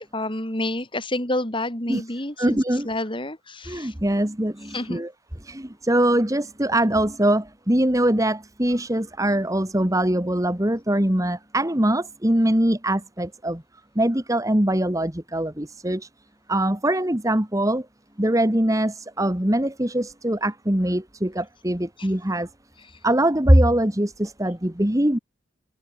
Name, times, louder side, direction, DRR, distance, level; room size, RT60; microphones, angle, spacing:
voice 1, 0.1-2.6 2.8-3.9 4.7-5.0 22.0-22.1, left 1 dB, 25° left, 3.9 m, -28 dB
voice 2, 2.4-2.9 3.7-5.1 5.4-13.6 14.0-16.1 16.5-17.9 18.2-22.5 23.0-25.2, right 1 dB, 15° right, 1.7 m, -22 dB
head